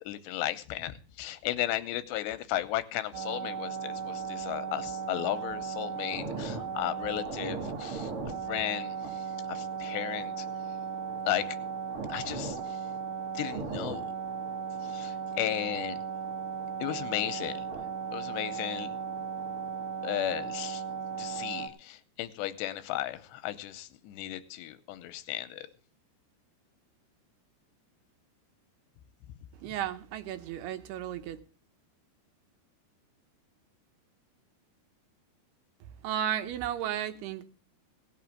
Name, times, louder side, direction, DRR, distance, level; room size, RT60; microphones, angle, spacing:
voice 1, 0.0-8.1 8.5-10.5 11.3-11.6 12.1-12.8 13.3-14.1 14.8-16.0 16.8-17.6 18.1-19.0 20.0-20.8 21.2-25.7, left 14 dB, 90° left, 12 dB, 3.0 m, -35 dB
sound 1, 3.1-21.7, right 6 dB, 55° right, 1.5 m, -36 dB
voice 2, 29.6-31.4 36.0-37.4, right 10 dB, 75° right, 9 dB, 2.7 m, -34 dB
18.0 x 6.1 x 7.3 m, 0.39 s
omnidirectional pair, 4.9 m